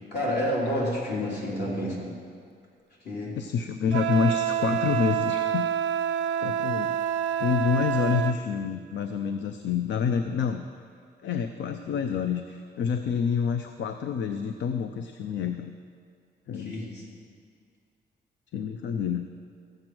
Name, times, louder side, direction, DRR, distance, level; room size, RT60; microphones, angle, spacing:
voice 1, 0.1-2.1 3.0-3.4 16.5-17.1, equal, 60° left, -5 dB, 3.4 m, -29 dB
voice 2, 3.4-5.7 6.4-6.9 7.4-10.6 11.2-15.7 16.5-16.7 18.5-19.3, left 6 dB, 80° left, 8 dB, 0.6 m, -27 dB
Wind instrument woodwind instrument, 3.9-8.4, right 9 dB, 80° right, 0.5 m, -27 dB
14.5 x 7.8 x 6.1 m, 2.2 s
wide cardioid pair, 150°, 19 cm